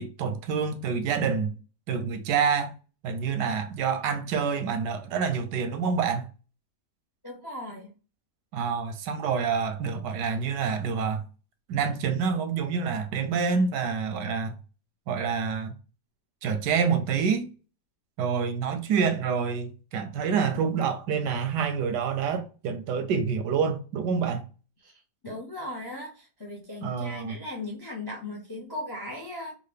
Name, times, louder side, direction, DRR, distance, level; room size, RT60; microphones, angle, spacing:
voice 1, 0.0-1.5 1.9-2.7 3.0-6.3 8.5-11.2 11.7-14.6 15.1-15.7 16.4-17.5 18.2-24.5 26.8-27.4, right 6 dB, 90° right, 1.3 m, -27 dB
voice 2, 7.2-7.9 24.8-24.9 25.2-29.5, left 1 dB, 40° left, 0.3 m, -37 dB
3.7 x 2.2 x 3.3 m
omnidirectional pair, 1.8 m